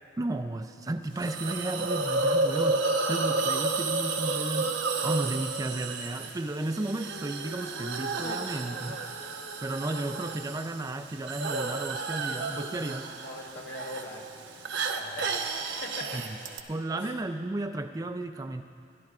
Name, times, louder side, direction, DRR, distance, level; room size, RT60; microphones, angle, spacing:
voice 1, 0.2-4.8 5.0-9.0 9.6-13.1 16.1-16.2 16.7-18.6, right 2 dB, 20° right, 7 dB, 0.4 m, -33 dB
Hiss, 1.2-16.6, right 3 dB, 90° right, 1.0 m, -31 dB
voice 2, 13.2-14.3 14.8-16.2 17.0-17.2, left 1 dB, 70° left, -1 dB, 2.2 m, -42 dB
28.5 x 12.5 x 2.4 m, 2.5 s
head